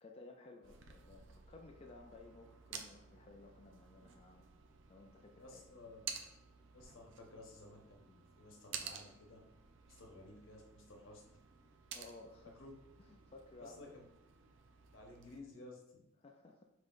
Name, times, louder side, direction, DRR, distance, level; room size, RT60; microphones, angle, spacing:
voice 1, 0.0-4.5 4.9-5.6 11.9-12.5 13.1-13.9 16.2-16.6, left 3 dB, 30° left, 2 dB, 0.3 m, -57 dB
sound 1, 0.6-15.4, right 7 dB, 70° right, 0.5 m, -53 dB
voice 2, 5.4-6.0 6.7-9.4 9.9-11.4 12.4-12.7 13.6-14.0 14.9-16.0, left 2 dB, 80° left, 0 dB, 1.0 m, -55 dB
5.3 x 3.2 x 2.5 m, 0.89 s
head